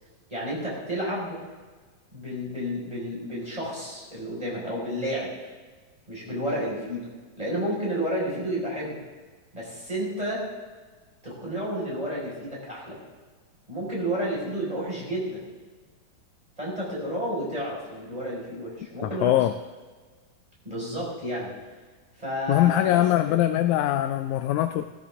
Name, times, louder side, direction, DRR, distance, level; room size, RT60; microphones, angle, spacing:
voice 1, 0.3-1.4 2.1-5.3 6.1-7.1 7.4-9.0 9.5-10.4 11.2-13.0 13.7-15.5 16.6-19.3 20.6-21.5 22.2-23.4, equal, 10° right, -6 dB, 5.4 m, -31 dB
voice 2, 19.2-19.5 22.5-24.9, left 13 dB, 85° left, 9 dB, 1.7 m, -22 dB
19.5 x 14.0 x 3.7 m, 1.4 s
omnidirectional pair, 3.9 m